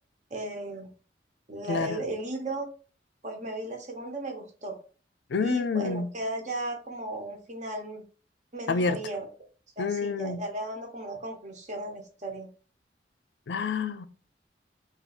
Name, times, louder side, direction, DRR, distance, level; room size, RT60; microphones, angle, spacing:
voice 1, 0.3-0.9 1.5-2.7 3.2-4.8 5.4-8.0 8.5-9.3 9.8-12.5, right 2 dB, 40° right, 0.9 m, -35 dB
voice 2, 1.7-2.0 5.3-6.1 8.7-9.0 9.8-10.4 13.5-14.1, left 4 dB, 80° left, 0.4 m, -28 dB
3.6 x 2.5 x 4.1 m
head